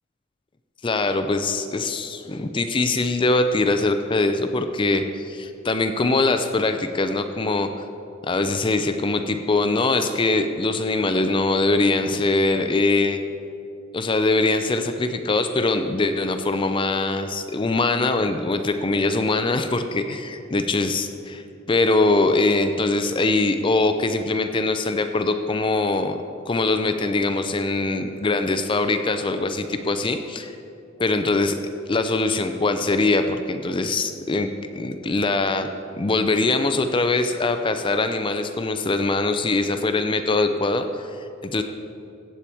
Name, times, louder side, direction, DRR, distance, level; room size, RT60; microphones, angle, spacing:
voice 1, 0.8-7.7 8.2-13.2 13.9-26.2 26.5-30.6 31.0-31.6 31.9-35.7 36.0-41.6, left 2 dB, 25° left, 8 dB, 0.4 m, -22 dB
15.5 x 8.6 x 4.5 m, 2.8 s
head